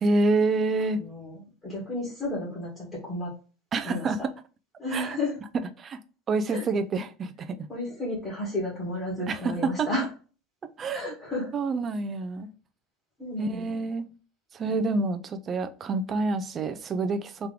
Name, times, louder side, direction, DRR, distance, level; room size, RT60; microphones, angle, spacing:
voice 1, 0.0-1.0 3.7-4.3 4.9-5.2 5.5-6.0 6.3-7.7 9.3-9.9 10.8-11.1 11.5-12.5 13.4-14.1 14.5-17.5, right 3 dB, 25° right, 0.4 m, -27 dB
voice 2, 1.0-3.3 3.8-4.1 4.8-5.4 6.5-6.6 7.7-10.1 10.9-11.5 13.2-13.7, left 1 dB, 15° left, 1.7 m, -32 dB
3.7 x 3.0 x 3.3 m
cardioid pair, 165°, 0 cm